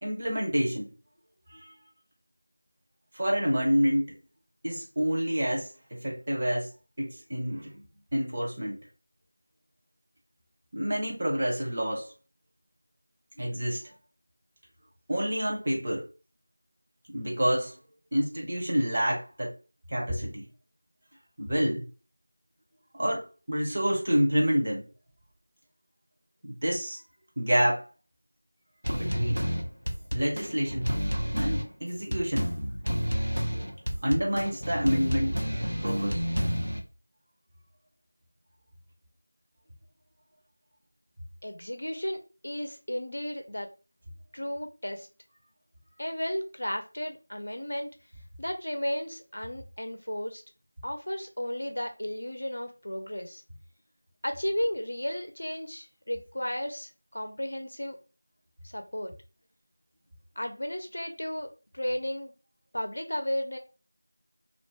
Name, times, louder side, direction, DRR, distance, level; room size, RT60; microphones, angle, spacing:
voice 1, 0.0-0.9 1.5-1.7 3.1-4.1 4.6-6.7 7.0-7.8 8.1-8.8 10.7-12.1 13.4-13.8 15.1-16.1 17.1-17.7 18.1-19.5 19.9-20.5 21.4-21.9 22.9-24.8 26.5-27.0 27.4-27.8 28.9-29.5 30.1-30.9 31.3-32.5 34.0-35.4 35.8-36.2, equal, 30° right, 0.7 m, -28 dB
sound 1, 28.8-36.8, equal, 85° right, 0.7 m, -30 dB
voice 2, 41.4-43.7 44.3-45.1 46.0-47.9 48.4-50.4 50.8-53.4 54.2-58.0 58.6-59.1 60.4-62.3 62.7-63.6, equal, 60° left, 0.6 m, -34 dB
2.5 x 2.2 x 3.4 m
figure-of-eight pair, 175°, 0 cm